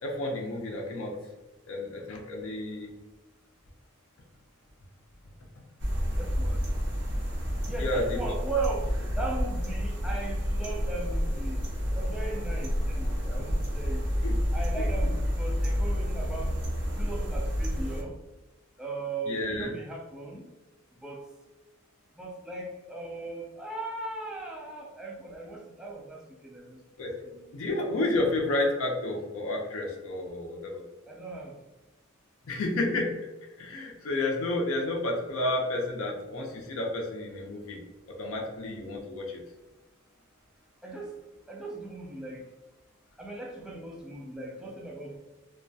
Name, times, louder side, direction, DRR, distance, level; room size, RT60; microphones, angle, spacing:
voice 1, 0.0-1.2 1.7-2.9 7.8-8.2 14.2-14.4 19.3-19.7 27.0-27.1 27.5-30.8 32.5-33.2 33.6-37.8 38.1-39.4, left 2 dB, 75° left, 0 dB, 0.5 m, -31 dB
sound 1, 5.8-18.0, equal, 60° right, 0.6 m, -29 dB
voice 2, 6.2-6.7 7.6-11.6 12.0-14.1 14.5-16.5 17.0-18.2 18.8-20.5 20.9-21.2 22.2-27.5 31.1-31.6 40.8-41.1 41.5-42.4 43.2-45.2, right 3 dB, 5° right, -2 dB, 0.3 m, -38 dB
2.3 x 2.1 x 2.5 m, 1.1 s
head